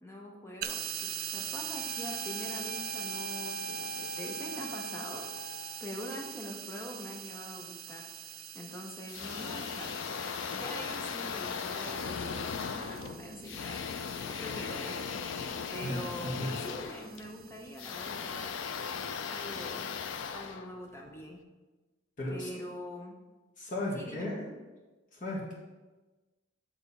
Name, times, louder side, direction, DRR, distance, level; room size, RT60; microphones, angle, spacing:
voice 1, 0.0-8.1 8.5-9.9 10.5-15.1 15.7-18.6 19.3-19.9 20.3-21.4 22.3-23.2 23.9-24.3, left 1 dB, 15° left, 0 dB, 0.9 m, -44 dB
sound 1, 0.6-20.0, right 10 dB, 50° right, 0.4 m, -43 dB
sound 2, 1.7-5.9, right 1 dB, 5° right, 1.5 m, -43 dB
sound 3, 9.1-21.3, left 6 dB, 75° left, 0.4 m, -38 dB
voice 2, 15.8-16.5 22.2-22.5 23.6-24.5 25.1-25.5, left 1 dB, 40° left, -5 dB, 1.8 m, -35 dB
9.1 x 3.5 x 4.2 m, 1.2 s
head